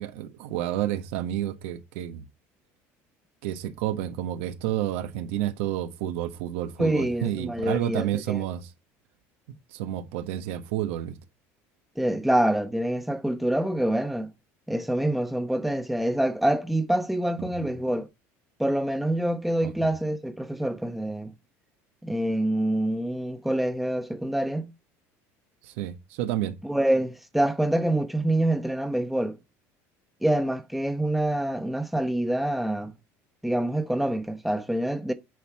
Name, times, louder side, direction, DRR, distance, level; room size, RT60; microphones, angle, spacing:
voice 1, 0.0-2.2 3.4-8.7 9.7-11.2 17.4-17.7 19.6-19.9 25.6-26.6, right 12 dB, 85° right, 1.2 m, -30 dB
voice 2, 6.8-8.5 12.0-14.3 14.7-18.1 18.6-21.3 22.0-24.7 26.6-29.4 30.2-32.9 33.4-35.1, right 1 dB, ahead, 0.9 m, -26 dB
9.0 x 4.4 x 4.7 m
supercardioid pair, 115°, 7 cm